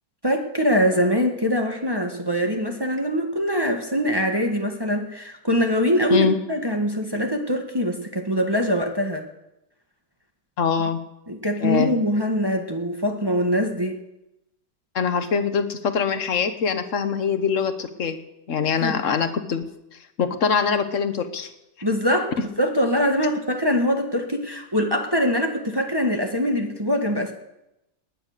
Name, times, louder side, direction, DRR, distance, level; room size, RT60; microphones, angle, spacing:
voice 1, 0.2-9.3 11.3-14.0 18.8-19.0 21.8-27.3, equal, 15° right, 2 dB, 1.5 m, -23 dB
voice 2, 10.6-11.0 11.6-11.9 14.9-18.2 18.5-19.6 19.9-21.5, left 6 dB, 50° left, 9 dB, 1.4 m, -23 dB
19.0 x 10.0 x 6.7 m, 0.89 s
omnidirectional pair, 2.0 m